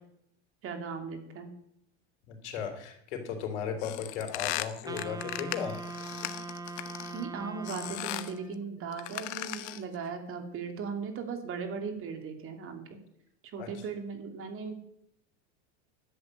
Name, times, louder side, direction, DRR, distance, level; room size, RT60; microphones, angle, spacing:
voice 1, 0.6-1.5 7.1-12.9 13.5-14.7, right 5 dB, 40° right, 5 dB, 2.8 m, -38 dB
voice 2, 2.3-5.8 13.6-13.8, left 7 dB, 80° left, 4 dB, 3.4 m, -36 dB
sound 1, 3.8-7.2 7.6-8.4 8.9-9.9, left 16 dB, 55° left, 1.1 m, -37 dB
Wind instrument woodwind instrument, 4.9-8.7, right 3 dB, 10° right, 1.1 m, -41 dB
11.5 x 8.0 x 8.3 m, 0.74 s
supercardioid pair, 120°, 34 cm